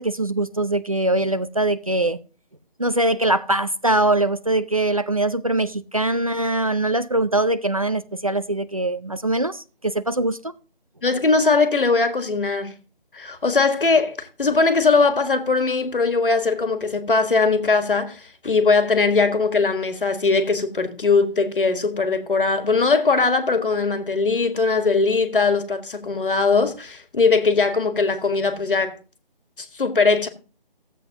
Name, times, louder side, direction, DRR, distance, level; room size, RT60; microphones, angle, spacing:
voice 1, 0.0-2.2 2.8-10.5, right 2 dB, 35° right, 0.4 m, -22 dB
voice 2, 11.0-12.7 13.1-28.9 29.6-30.3, left 4 dB, 60° left, 1.7 m, -20 dB
15.5 x 7.9 x 2.9 m
figure-of-eight pair, 165°, 30 cm